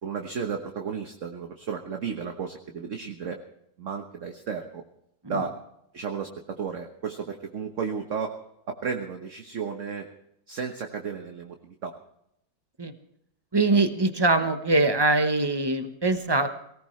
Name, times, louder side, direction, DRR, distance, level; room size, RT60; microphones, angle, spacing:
voice 1, 0.0-3.4 3.8-4.8 5.3-5.6 5.9-8.3 8.7-10.1 10.5-11.9, right 6 dB, 45° right, 4 dB, 1.3 m, -33 dB
voice 2, 13.5-16.5, right 2 dB, 20° right, 8 dB, 0.6 m, -23 dB
18.5 x 18.0 x 3.2 m, 0.77 s
omnidirectional pair, 2.1 m